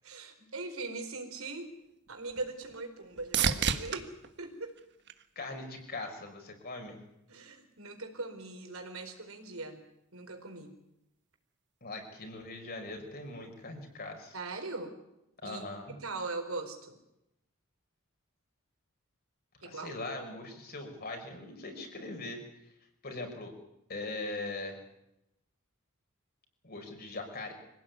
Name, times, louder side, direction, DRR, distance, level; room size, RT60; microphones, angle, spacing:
voice 1, 0.0-1.7 2.1-4.7 7.3-9.8 10.1-10.7 14.3-15.0 15.4-15.7 16.0-17.0 19.6-20.0, right 3 dB, 75° right, 5 dB, 4.6 m, -40 dB
sound 1, 1.6-5.8 6.3-6.9 14.8-14.9, right 7 dB, 55° right, 1.5 m, -35 dB
voice 2, 5.4-7.0 11.8-14.4 15.4-16.0 19.6-22.4 23.0-23.5 23.9-24.8 26.6-27.5, left 2 dB, 45° left, 3 dB, 5.6 m, -41 dB
25.0 x 17.0 x 9.6 m, 0.87 s
head